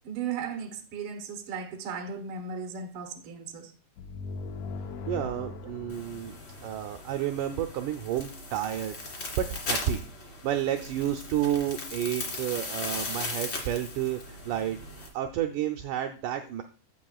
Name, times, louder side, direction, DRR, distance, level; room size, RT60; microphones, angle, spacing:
voice 1, 0.0-3.7, right 6 dB, 55° right, 1.7 m, -36 dB
sound 1, 4.0-7.5, left 3 dB, 70° left, 1.8 m, -40 dB
voice 2, 5.1-6.4 6.6-10.0 10.4-16.6, right 11 dB, 80° right, 2.0 m, -31 dB
sound 2, 5.9-15.1, left 3 dB, 35° left, 2.7 m, -38 dB
16.0 x 5.5 x 2.3 m
omnidirectional pair, 4.1 m